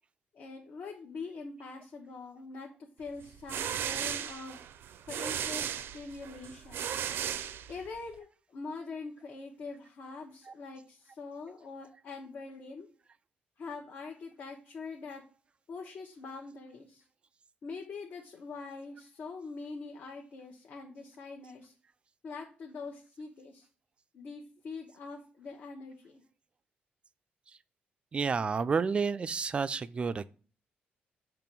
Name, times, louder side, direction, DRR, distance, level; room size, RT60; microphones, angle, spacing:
voice 1, 0.3-2.7 3.0-4.6 5.1-6.9 7.7-12.9 13.6-15.2 15.7-17.0 17.6-21.7 22.2-23.7 24.1-26.2, left 4 dB, 60° left, 1.0 m, -43 dB
sound 1, 3.2-8.1, right 9 dB, 85° right, 0.5 m, -36 dB
voice 2, 28.1-30.3, right 5 dB, 30° right, 0.3 m, -30 dB
6.9 x 3.0 x 6.0 m
cardioid pair, 150°, 4 cm